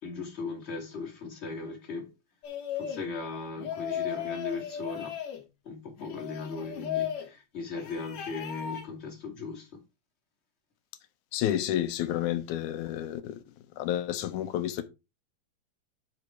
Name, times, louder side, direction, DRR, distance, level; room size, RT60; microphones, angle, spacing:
voice 1, 0.0-2.1 2.7-5.1 5.6-9.8, left 4 dB, 25° left, 2.5 m, -38 dB
sound 1, 2.4-3.1 3.6-5.4 6.0-7.3 7.7-8.9, left 9 dB, 70° left, 2.7 m, -36 dB
voice 2, 11.3-13.4 13.8-14.8, left 12 dB, 90° left, 2.3 m, -30 dB
10.0 x 4.1 x 4.6 m
omnidirectional pair, 3.4 m